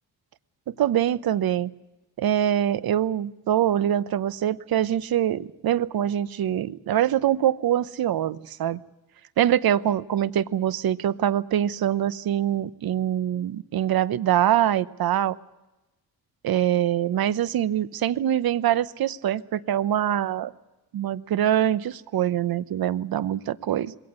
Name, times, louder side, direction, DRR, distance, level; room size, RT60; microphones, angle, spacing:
voice 1, 0.7-1.7 2.2-8.8 9.4-15.4 16.4-20.5 20.9-24.0, right 11 dB, 65° right, 19 dB, 0.9 m, -24 dB
21.5 x 17.5 x 9.6 m, 1.0 s
cardioid pair, 95°, 38 cm